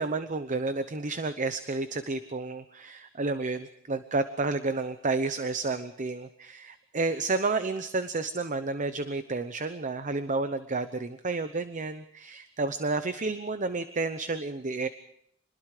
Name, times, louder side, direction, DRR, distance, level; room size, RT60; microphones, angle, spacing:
voice 1, 0.0-14.9, right 3 dB, 40° right, 10 dB, 0.9 m, -31 dB
26.5 x 21.0 x 4.9 m, 0.71 s
head